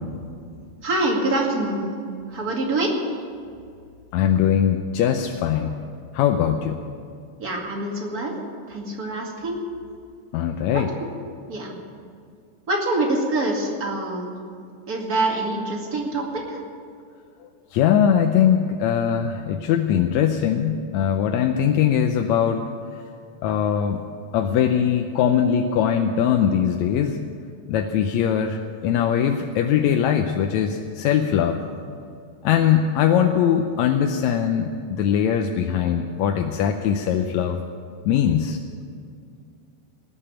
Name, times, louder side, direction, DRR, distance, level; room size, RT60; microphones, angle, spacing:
voice 1, 0.8-1.9 2.3-2.9 7.4-8.4 8.7-9.6 10.7-11.1 11.5-11.7 12.7-14.3 14.9-16.6, right 2 dB, 30° right, -1 dB, 2.5 m, -25 dB
voice 2, 4.1-5.8 6.1-6.8 10.3-10.9 17.7-22.7 23.4-24.0 24.3-27.2 27.7-31.6 32.4-37.6 38.1-38.6, left 8 dB, 75° left, 5 dB, 1.9 m, -21 dB
19.5 x 7.0 x 9.9 m, 2.3 s
omnidirectional pair, 3.5 m